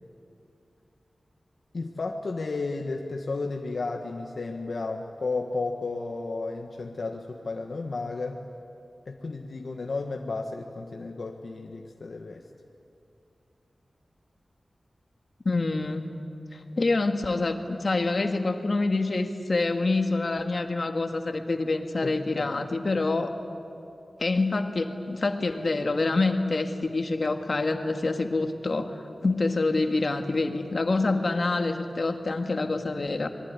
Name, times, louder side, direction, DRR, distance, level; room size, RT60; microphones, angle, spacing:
voice 1, 1.7-8.4 9.0-12.4 22.0-22.6, left 3 dB, 65° left, 2 dB, 1.4 m, -33 dB
voice 2, 15.5-16.1 16.5-23.3 24.2-33.3, left 3 dB, 50° left, 6 dB, 1.9 m, -26 dB
26.5 x 22.0 x 9.8 m, 2.8 s
wide cardioid pair, 105°, 0 cm